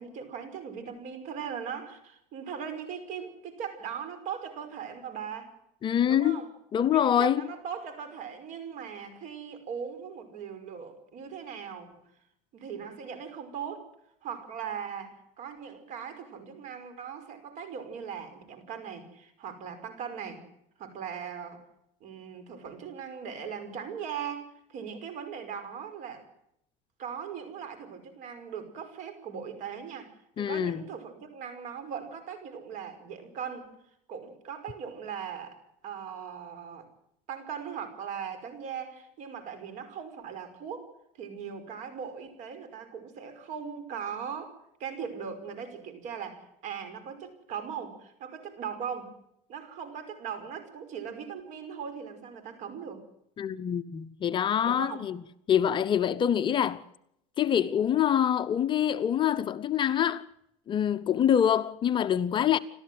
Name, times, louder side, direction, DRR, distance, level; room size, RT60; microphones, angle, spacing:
voice 1, 0.0-5.5 6.1-6.5 6.9-11.9 12.5-13.9 14.2-20.4 20.8-21.6 22.0-26.3 27.0-30.1 30.4-33.7 34.1-35.6 35.8-36.9 37.3-40.9 41.2-49.1 49.5-53.0 54.6-55.1, right 7 dB, 50° right, 5.3 m, -39 dB
voice 2, 5.8-6.4 6.7-7.4 30.4-30.8 53.4-55.2 55.5-56.8 57.4-60.3 60.7-62.6, left 9 dB, 30° left, 0.8 m, -25 dB
29.0 x 13.0 x 7.8 m
supercardioid pair, 130°, 16 cm